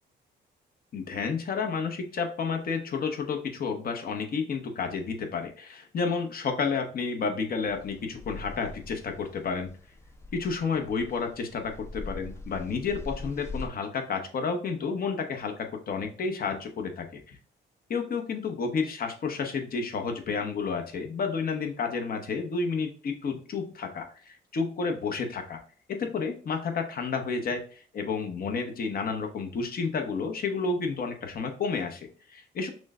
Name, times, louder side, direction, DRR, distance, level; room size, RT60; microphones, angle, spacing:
voice 1, 0.9-9.7 10.3-17.4 17.9-25.6 25.9-32.7, left 5 dB, 50° left, 4 dB, 0.8 m, -31 dB
sound 1, 7.7-13.7, left 2 dB, 15° left, 0.4 m, -42 dB
6.1 x 2.1 x 2.3 m, 0.41 s
cardioid pair, 90°, 20 cm